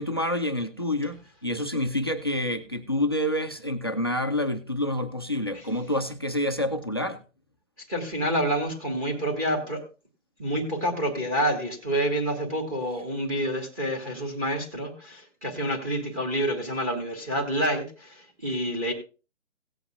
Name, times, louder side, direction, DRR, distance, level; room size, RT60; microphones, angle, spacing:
voice 1, 0.0-7.2, left 1 dB, 20° left, 0.4 m, -28 dB
voice 2, 7.9-9.8 10.4-18.9, right 1 dB, 15° right, 1.7 m, -28 dB
17.5 x 8.2 x 2.4 m
hypercardioid pair, 160°, 38 cm